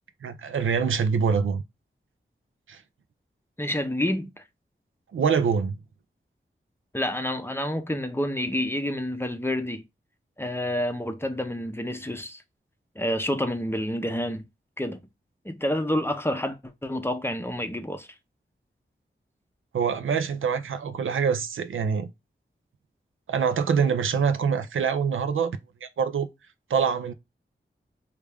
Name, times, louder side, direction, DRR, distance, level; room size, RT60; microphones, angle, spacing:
voice 1, 0.2-1.6 2.7-2.8 5.1-5.8 19.7-22.1 23.3-26.3 26.7-27.1, right 6 dB, 85° right, 0.4 m, -25 dB
voice 2, 3.6-4.3 6.9-9.8 10.4-12.4 13.0-14.5 14.8-15.0 15.4-18.1, left 1 dB, 10° left, 0.6 m, -28 dB
3.3 x 2.4 x 3.3 m
wide cardioid pair, 55°, 20 cm